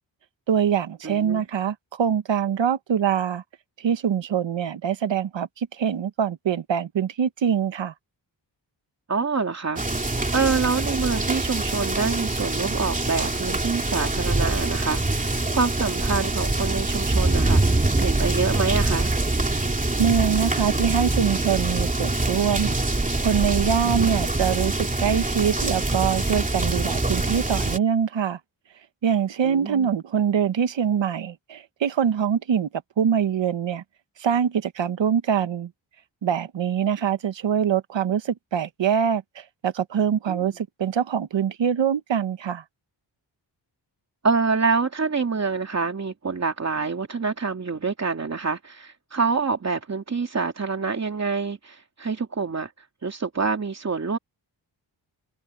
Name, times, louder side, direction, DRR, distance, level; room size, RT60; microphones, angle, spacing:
voice 1, 0.5-3.4 3.8-7.9 19.7-22.8 23.2-28.4 29.0-33.8 34.2-35.7 36.2-42.6, right 8 dB, 75° right, 1.3 m, -24 dB
voice 2, 1.0-1.5 9.1-9.8 10.3-19.1 23.8-24.1 29.4-29.9 40.3-40.5 44.2-54.2, right 4 dB, 35° right, 2.9 m, -26 dB
sound 1, 9.8-27.8, right 2 dB, 15° right, 2.8 m, -24 dB
wide cardioid pair, 150°, 44 cm